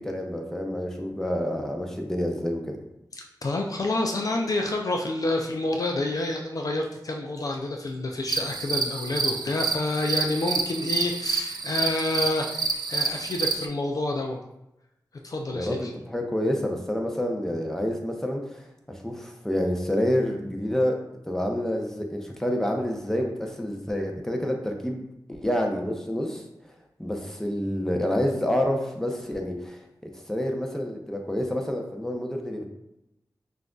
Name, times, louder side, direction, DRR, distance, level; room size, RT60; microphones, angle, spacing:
voice 1, 0.0-2.8 15.5-21.0 21.3-32.7, equal, 5° left, 2 dB, 0.7 m, -28 dB
voice 2, 3.4-14.4 15.2-15.9, left 2 dB, 55° left, 2 dB, 0.4 m, -28 dB
sound 1, 8.3-13.7, right 4 dB, 70° right, 0.4 m, -28 dB
5.6 x 2.6 x 2.3 m, 0.86 s
cardioid pair, 50°, 7 cm